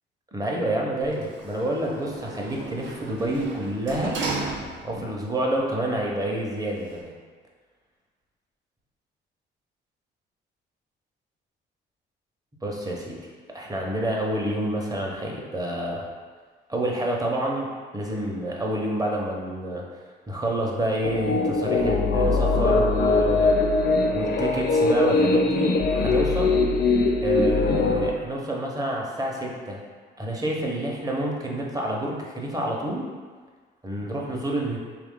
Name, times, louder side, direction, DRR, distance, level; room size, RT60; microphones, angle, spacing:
voice 1, 0.3-4.2 4.8-7.2 12.6-13.2 13.5-16.0 16.7-19.8 20.3-23.5 24.1-26.6 27.2-29.8 30.2-33.1 33.8-34.8, right 1 dB, 20° right, -2 dB, 0.7 m, -28 dB
Sliding door, 1.0-5.1 5.6-5.7, right 3 dB, 75° right, 0.6 m, -35 dB
sound 1, 21.0-28.1, left 3 dB, 55° left, 0.4 m, -21 dB
3.5 x 2.4 x 3.6 m, 1.5 s
cardioid pair, 90°, 20 cm